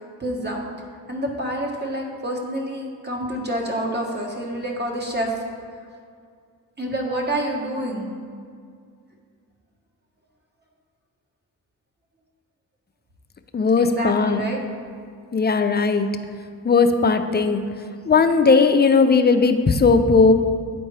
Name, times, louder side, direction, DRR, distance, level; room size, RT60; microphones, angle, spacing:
voice 1, 0.2-0.6 1.1-5.3 6.8-8.1 13.8-14.6, right 1 dB, 25° right, -1 dB, 1.4 m, -27 dB
voice 2, 13.5-14.4 15.3-16.1 16.6-17.6 18.1-20.3, left 4 dB, 25° left, 8 dB, 0.5 m, -17 dB
9.4 x 4.3 x 3.3 m, 2.2 s
supercardioid pair, 45°, 42 cm